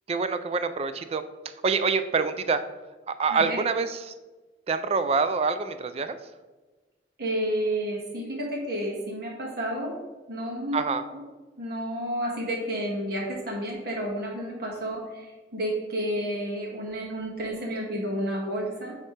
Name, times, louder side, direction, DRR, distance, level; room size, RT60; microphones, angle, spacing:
voice 1, 0.1-1.2 1.6-2.6 3.1-4.1 4.7-6.2 10.7-11.0, right 4 dB, 35° right, 11 dB, 0.3 m, -26 dB
voice 2, 3.3-3.6 7.2-9.9 10.3-10.8 11.6-18.9, equal, 60° right, -2 dB, 1.6 m, -31 dB
9.4 x 3.3 x 3.2 m, 1.2 s
head